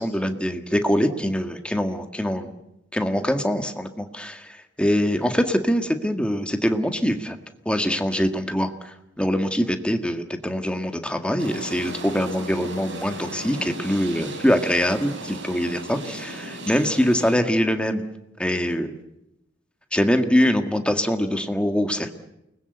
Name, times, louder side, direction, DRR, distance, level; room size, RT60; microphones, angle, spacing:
voice 1, 0.0-2.5 2.9-7.4 7.7-8.7 9.2-18.0 18.4-18.9 19.9-22.1, equal, 5° left, 6 dB, 1.9 m, -23 dB
sound 1, 11.4-17.3, right 1 dB, 75° right, 5.7 m, -36 dB
29.0 x 20.5 x 8.2 m, 0.86 s
head